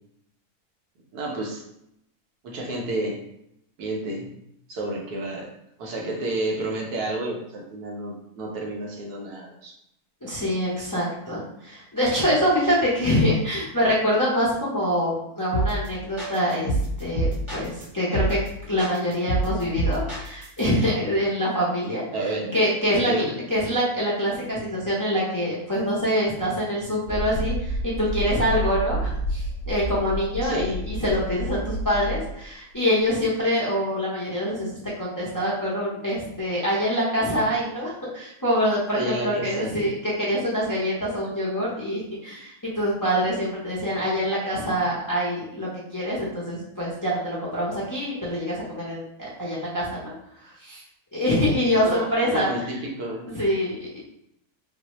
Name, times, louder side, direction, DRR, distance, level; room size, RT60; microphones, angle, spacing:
voice 1, 1.1-1.6 2.4-3.2 3.8-4.3 4.7-5.5 5.8-9.8 22.1-22.5 22.9-23.3 30.4-30.8 38.9-40.0 51.9-53.3, right 2 dB, 80° right, 0 dB, 1.2 m, -30 dB
voice 2, 10.2-22.0 22.5-34.7 35.0-50.1 50.4-50.8 51.1-52.5 53.3-54.0, equal, 25° left, -7 dB, 0.4 m, -25 dB
sound 1, 15.5-15.9 16.2-17.8 18.1-18.5 18.8-20.6, right 1 dB, 25° right, 0.9 m, -26 dB
sound 2, 27.1-32.4, equal, 70° left, 0.9 m, -30 dB
3.9 x 2.1 x 2.9 m, 0.78 s
omnidirectional pair, 1.6 m